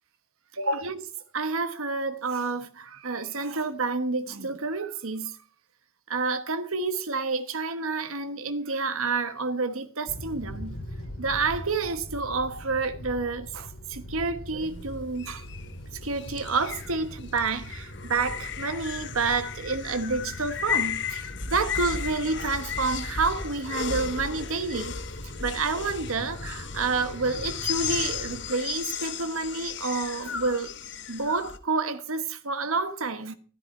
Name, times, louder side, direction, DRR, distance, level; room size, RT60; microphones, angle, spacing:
voice 1, 0.5-1.1 1.3-5.4 6.1-10.8 11.2-15.4 15.9-24.9 25.4-30.7 31.1-33.3, right 4 dB, 75° right, 1.2 m, -29 dB
sound 1, 10.1-28.4, left 1 dB, 80° left, 2.7 m, -42 dB
sound 2, 14.6-31.6, left 7 dB, 55° left, 1.0 m, -35 dB
13.5 x 12.5 x 4.4 m
head